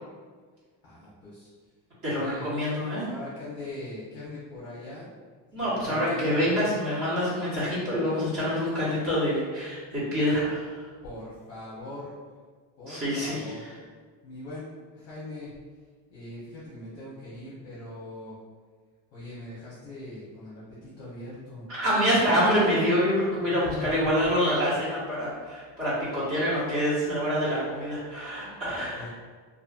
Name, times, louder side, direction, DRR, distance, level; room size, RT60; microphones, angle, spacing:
voice 1, 0.8-1.5 2.0-2.5 3.0-5.1 5.6-6.7 11.0-12.1 12.8-13.6 14.2-15.5 16.1-18.3 19.1-20.6 21.0-21.6 23.3-24.2 28.9-29.1, left 2 dB, 35° left, -8 dB, 0.7 m, -41 dB
voice 2, 2.0-3.0 5.5-10.9 12.9-13.8 21.7-29.1, equal, 30° right, -9 dB, 1.1 m, -26 dB
2.5 x 2.5 x 2.4 m, 1.5 s
cardioid pair, 155°, 43 cm